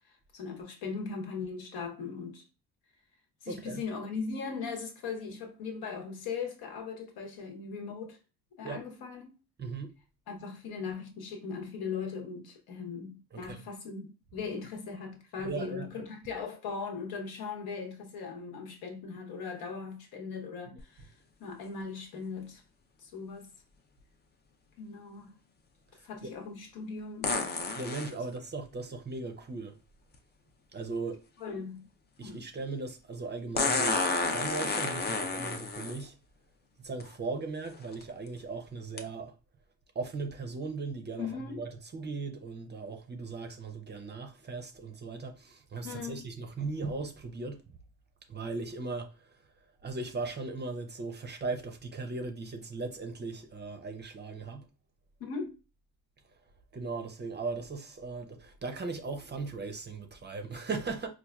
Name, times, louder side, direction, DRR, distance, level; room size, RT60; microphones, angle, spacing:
voice 1, 0.0-2.4 3.4-8.2 8.6-9.3 10.3-21.1 21.4-22.6 23.0-23.5 24.8-25.4 26.0-27.4 31.4-31.9 32.2-32.4 41.2-41.6 45.8-46.3 55.2-55.6, left 5 dB, 65° left, 1.1 m, -39 dB
voice 2, 3.5-3.8 8.6-8.8 9.6-9.9 13.3-13.6 15.4-16.0 25.9-26.3 27.8-29.7 30.7-31.2 32.2-36.1 36.8-39.3 39.9-47.8 48.3-49.5 49.8-54.7 56.7-61.1, right 3 dB, 25° right, 0.6 m, -38 dB
sound 1, 20.8-20.9 27.2-28.1 30.1-30.2 33.6-36.0 37.0-37.1 37.7-38.0 39.0-39.1, left 3 dB, 25° left, 0.5 m, -30 dB
4.3 x 2.4 x 2.3 m
supercardioid pair, 85°, 39 cm